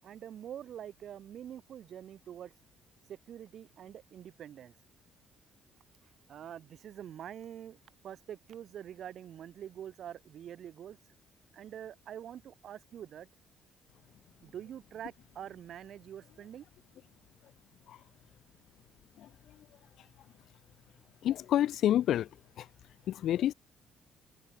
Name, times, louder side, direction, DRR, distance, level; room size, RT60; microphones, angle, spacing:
voice 1, 0.0-2.5 3.1-4.7 6.3-11.0 11.5-13.3 14.4-16.6, right 10 dB, 50° right, 7.3 m, -45 dB
voice 2, 21.2-22.3 23.1-23.5, left 12 dB, 60° left, 0.9 m, -27 dB
cardioid pair, 165°, 0 cm